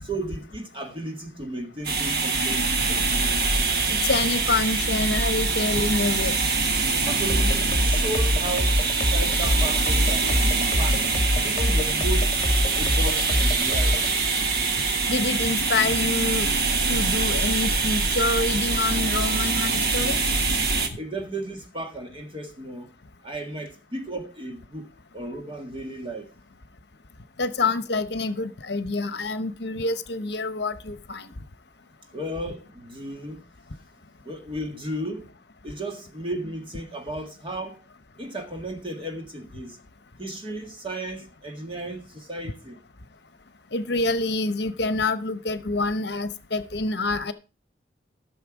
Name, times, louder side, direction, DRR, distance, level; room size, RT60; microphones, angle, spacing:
voice 1, 0.0-3.2 7.1-11.0 11.4-12.4 12.7-14.1 21.0-22.9 23.2-24.9 25.1-26.3 32.1-33.5 34.2-35.3 35.6-37.9 38.2-39.8 40.2-42.8, right 1 dB, 25° right, 1.8 m, -34 dB
sound 1, 1.8-20.9, right 3 dB, 55° right, 1.4 m, -24 dB
voice 2, 3.9-6.3 15.1-16.5 16.9-20.2 27.4-31.3 43.7-47.3, left 3 dB, 65° left, 0.9 m, -26 dB
Trance beat with deep bassline alternate, 7.3-14.1, left 1 dB, 30° left, 1.6 m, -25 dB
13.0 x 6.7 x 4.9 m
head